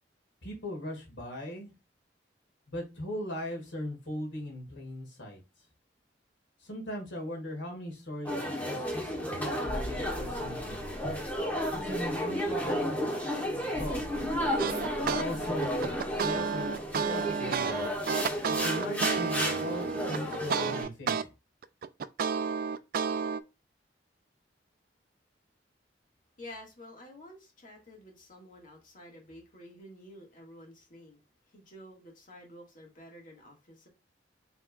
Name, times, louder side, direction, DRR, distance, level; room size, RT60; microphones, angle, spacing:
voice 1, 0.4-1.7 2.7-5.4 6.6-9.1 9.4-10.9 11.7-13.0 13.8-14.2 15.0-17.8 18.5-21.3, left 1 dB, 85° left, 1.9 m, -39 dB
sound 1, 8.3-20.8, equal, 10° left, 1.4 m, -33 dB
sound 2, 9.6-18.0 18.3-18.5, equal, 80° right, 1.4 m, -45 dB
sound 3, 14.6-15.2 15.6-21.2 21.6-23.4, right 6 dB, 50° right, 0.3 m, -31 dB
voice 2, 26.4-31.2 31.5-33.9, left 1 dB, 45° left, 1.6 m, -50 dB
5.7 x 3.5 x 2.3 m
head